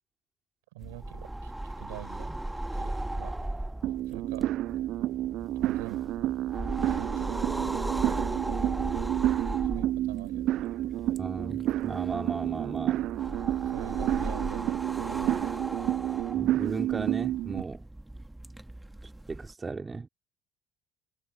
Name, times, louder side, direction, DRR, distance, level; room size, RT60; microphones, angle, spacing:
voice 1, 0.7-2.3 2.8-3.5 4.1-4.5 5.6-6.1 6.9-7.7 9.7-10.6 13.7-15.9, right 21 dB, 75° right, 5.4 m, -46 dB
sound 1, 0.8-19.5, right 1 dB, 10° right, 2.1 m, -37 dB
sound 2, 3.8-17.6, right 14 dB, 60° right, 0.3 m, -30 dB
voice 2, 11.2-13.1 16.3-17.9 19.0-20.1, right 4 dB, 25° right, 2.9 m, -36 dB
hypercardioid pair, 60°, 0 cm